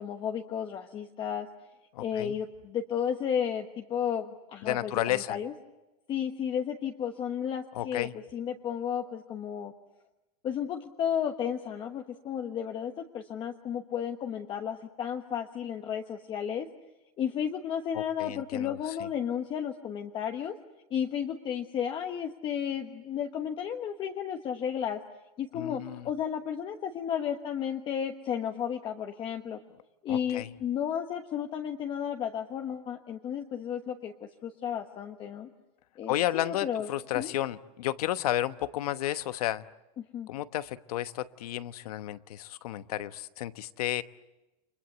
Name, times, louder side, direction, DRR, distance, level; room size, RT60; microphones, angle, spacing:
voice 1, 0.0-1.5 2.0-5.5 6.1-9.7 10.4-16.7 17.2-20.6 20.9-25.0 25.4-29.6 30.0-35.5 36.0-36.9 37.1-37.3 40.0-40.3, left 8 dB, 25° left, 4 dB, 1.2 m, -33 dB
voice 2, 1.9-2.4 4.6-5.4 7.7-8.1 17.9-18.8 25.5-26.1 30.1-30.5 36.1-39.7 40.3-44.0, left 13 dB, 75° left, 12 dB, 1.1 m, -32 dB
29.5 x 24.5 x 8.0 m, 1.0 s
supercardioid pair, 155°, 19 cm